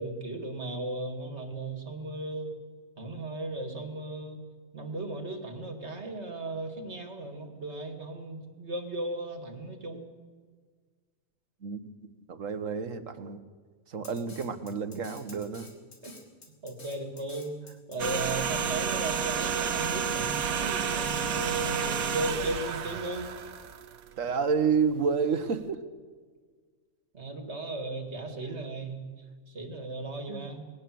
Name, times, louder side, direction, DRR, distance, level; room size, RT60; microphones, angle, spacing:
voice 1, 0.0-2.5 3.0-4.4 4.7-10.1 16.0-16.2 16.6-17.6 17.9-23.3 27.1-29.1 29.5-30.6, right 2 dB, 50° right, 6 dB, 2.5 m, -36 dB
voice 2, 12.3-13.4 13.9-15.7 24.2-25.8 30.3-30.5, right 5 dB, 65° right, 10 dB, 1.7 m, -29 dB
Drum kit, 14.0-22.0, left 2 dB, 65° left, 3.2 m, -50 dB
sound 1, 18.0-24.3 24.6-24.8, right 7 dB, 85° right, 1.4 m, -31 dB
20.5 x 18.5 x 7.8 m, 1.5 s
omnidirectional pair, 1.4 m